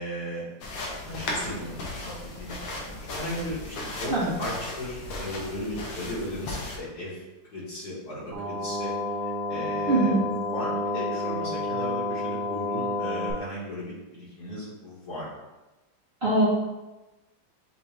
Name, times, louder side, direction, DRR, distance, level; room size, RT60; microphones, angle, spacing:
voice 1, 0.0-7.2 7.5-8.9 9.2-10.2 10.5-15.3, equal, 60° left, -7 dB, 1.9 m, -36 dB
sound 1, 0.6-6.8, left 2 dB, 90° left, 1.6 m, -36 dB
sound 2, 8.3-13.3, left 2 dB, 85° right, 1.5 m, -30 dB
voice 2, 9.9-10.2 16.2-16.5, right 2 dB, 35° right, -10 dB, 1.3 m, -22 dB
6.1 x 2.5 x 3.2 m, 1.1 s
omnidirectional pair, 2.0 m